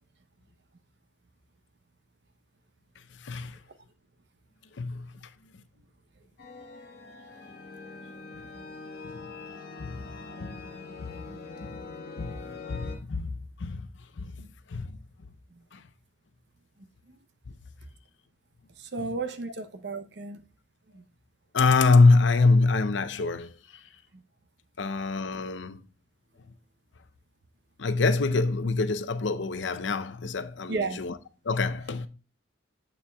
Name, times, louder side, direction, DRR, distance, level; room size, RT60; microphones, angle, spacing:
voice 1, 3.2-3.6 4.8-5.1 9.1-9.2 9.8-10.0 10.4-10.6 11.0-11.2 11.6-11.8 12.2-12.4 12.7-13.9 14.2-14.3 14.7-15.0 15.7-15.8 19.0-19.1 21.5-23.5 24.8-25.8 27.8-31.1 31.4-32.1, left 3 dB, 85° left, 0.6 m, -25 dB
sound 1, 6.4-13.0, left 4 dB, 60° left, 1.3 m, -43 dB
voice 2, 8.3-8.7 11.3-11.4 14.4-14.5 16.8-17.2 18.8-20.4 20.9-21.0 30.7-31.0, right 3 dB, 65° right, 0.7 m, -35 dB
7.5 x 6.8 x 2.3 m
head